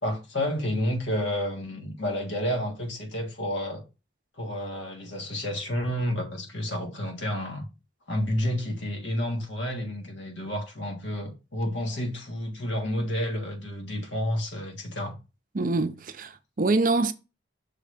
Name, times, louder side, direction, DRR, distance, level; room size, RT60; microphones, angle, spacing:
voice 1, 0.0-3.8 4.4-7.7 8.1-15.2, left 1 dB, 75° left, 1.7 m, -30 dB
voice 2, 15.5-17.1, right 3 dB, 45° right, 0.5 m, -25 dB
6.2 x 3.3 x 5.0 m
head